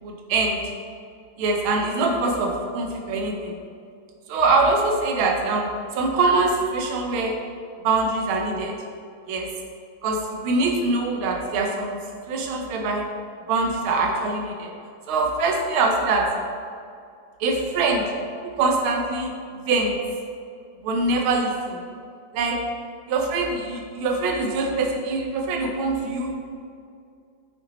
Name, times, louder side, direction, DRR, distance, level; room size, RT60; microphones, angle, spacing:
voice 1, 0.0-0.6 1.4-3.6 4.3-7.4 7.8-8.7 9.3-9.5 10.0-12.0 12.3-13.0 13.5-14.7 15.1-16.3 17.4-18.0 18.4-19.9 20.8-21.8 22.3-22.6 23.1-26.4, right 3 dB, 80° right, 2 dB, 1.6 m, -23 dB
6.2 x 5.8 x 4.0 m, 2.4 s
omnidirectional pair, 2.3 m